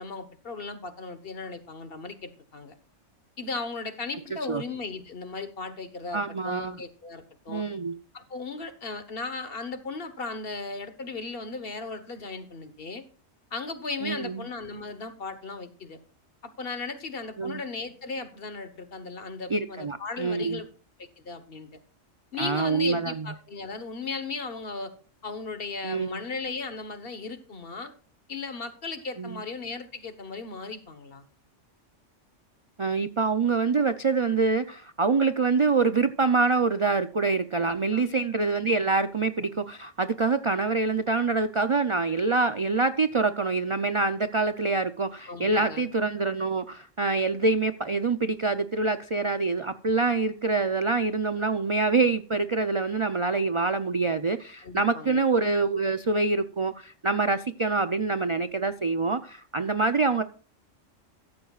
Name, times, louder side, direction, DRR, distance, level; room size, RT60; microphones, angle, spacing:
voice 1, 0.0-2.7 3.4-7.6 8.1-13.0 13.5-16.0 16.6-20.7 21.0-21.7 22.3-24.9 25.2-27.9 28.3-31.2 37.5-38.2 45.3-45.9 54.6-55.2, left 4 dB, 50° left, 1.4 m, -36 dB
voice 2, 6.1-6.8 7.5-8.0 14.0-14.4 17.4-17.6 19.5-20.6 22.4-23.3 25.8-26.2 29.2-29.4 32.8-60.2, right 3 dB, 45° right, 0.4 m, -25 dB
14.0 x 13.5 x 2.4 m
omnidirectional pair, 1.3 m